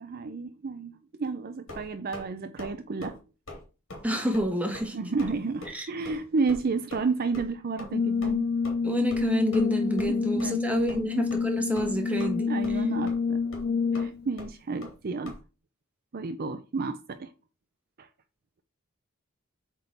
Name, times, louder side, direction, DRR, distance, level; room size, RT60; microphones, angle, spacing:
voice 1, 0.0-3.2 4.9-8.5 10.1-10.6 10.9-11.0 12.5-13.4 13.9-15.4 16.1-17.3 18.0-18.1, right 4 dB, 45° right, 0.5 m, -31 dB
sound 1, 1.7-2.3 2.6-2.7 3.0-3.2 3.5-3.6 3.9-4.0 4.3-4.5 4.7-4.9 5.2-5.3 5.6-5.7 6.0-6.2 6.5-6.6 6.9-7.1 7.3-7.5 7.8-7.9 8.2-8.3 8.6-8.7 9.1-9.2 9.5-9.7 10.0-10.1 10.4-10.5 10.9-11.0 11.3-11.4 11.7-12.3 12.6-12.8 13.1-13.2 13.5-13.6 13.9-14.1 14.4-14.5 14.8-14.9 15.2-15.4, left 1 dB, 65° left, 2.6 m, -42 dB
voice 2, 4.0-5.0 5.7-5.9 8.8-12.5, right 1 dB, 5° right, 1.2 m, -28 dB
Brass instrument, 7.9-14.3, left 5 dB, 45° left, 0.4 m, -28 dB
7.8 x 3.6 x 4.3 m
head